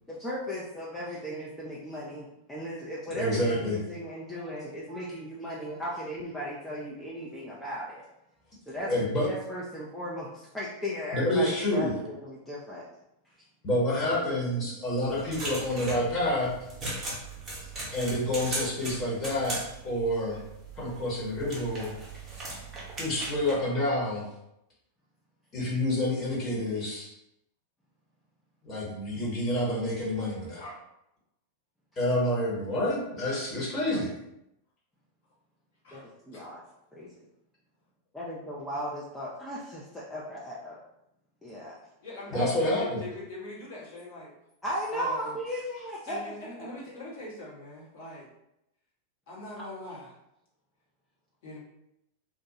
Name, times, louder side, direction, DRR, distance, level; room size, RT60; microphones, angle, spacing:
voice 1, 0.1-8.0 8.7-12.9 14.0-14.2 14.6-14.7 17.6-17.7 35.9-36.6 36.9-37.1 38.1-40.8 41.4-41.8 42.3-42.5 44.6-46.2 46.6-46.7, equal, 5° left, -6 dB, 0.5 m, -36 dB
voice 2, 3.1-3.8 8.7-9.3 11.1-11.9 13.6-16.5 17.9-20.4 20.8-21.9 23.0-24.2 25.5-27.1 28.6-30.6 32.0-34.1 42.3-43.0, left 1 dB, 30° left, -6 dB, 1.1 m, -28 dB
sound 1, 15.0-23.5, right 2 dB, 20° right, 0.9 m, -39 dB
voice 3, 42.0-44.3 44.9-45.3 46.1-48.3 49.3-50.1 51.4-51.6, left 2 dB, 55° left, -6 dB, 1.1 m, -42 dB
2.5 x 2.2 x 2.7 m, 0.84 s
figure-of-eight pair, 90°, 0 cm